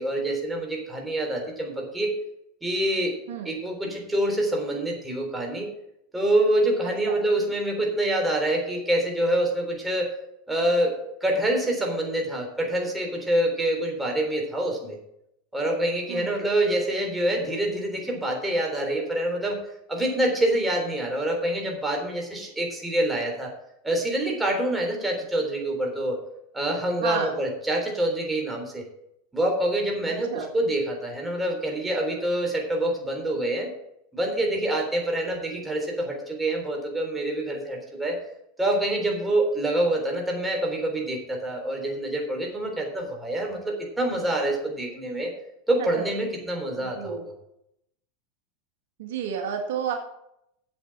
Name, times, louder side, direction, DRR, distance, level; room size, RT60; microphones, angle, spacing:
voice 1, 0.0-2.1 2.6-3.2 3.5-5.7 6.1-10.1 10.5-10.9 11.2-15.0 15.5-19.6 19.9-23.5 23.8-26.2 26.5-28.9 29.3-33.7 34.1-38.2 38.6-45.3 45.7-47.3, right 1 dB, 10° right, 1 dB, 3.5 m, -26 dB
voice 2, 27.0-27.4 30.1-30.5 46.8-47.2 49.0-49.9, right 7 dB, 75° right, 4 dB, 1.7 m, -31 dB
7.9 x 7.9 x 7.4 m, 0.79 s
hypercardioid pair, 115°, 0 cm